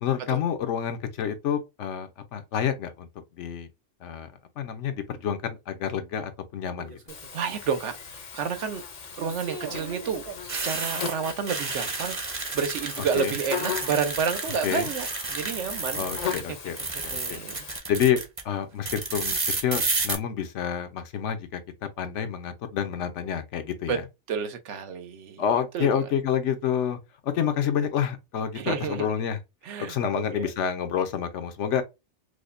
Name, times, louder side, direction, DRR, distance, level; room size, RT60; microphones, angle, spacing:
voice 1, 0.0-3.1 3.4-3.7 4.0-4.3 4.6-7.0 13.1-13.3 14.6-14.9 15.9-16.8 17.0-17.4 17.9-21.6 22.0-24.0 25.4-29.4 29.9-31.8, left 8 dB, 90° left, 1.0 m, -28 dB
sound 1, 6.8-7.3 9.1-16.4 16.7-18.4 18.9-20.2, right 3 dB, 35° right, 0.7 m, -32 dB
Buzz, 7.1-17.8, left 7 dB, 50° left, 0.5 m, -38 dB
voice 2, 7.3-8.8 9.2-10.2 10.6-16.0 17.1-17.6 23.9-24.0 24.3-25.4 25.7-26.0 28.5-29.1 29.7-30.5, right 6 dB, 85° right, 1.0 m, -30 dB
4.8 x 2.1 x 2.4 m
omnidirectional pair, 1.2 m